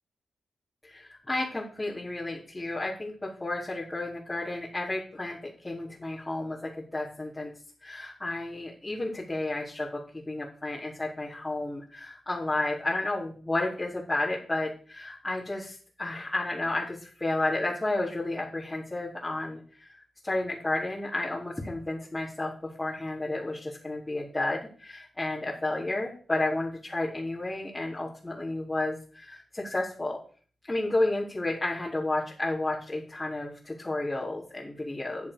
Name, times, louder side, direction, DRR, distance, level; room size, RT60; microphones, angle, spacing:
voice 1, 0.8-7.5 7.8-30.2 30.6-35.3, left 2 dB, 15° left, -9 dB, 4.5 m, -32 dB
11.0 x 7.4 x 6.7 m, 0.42 s
cardioid pair, 95°, 0 cm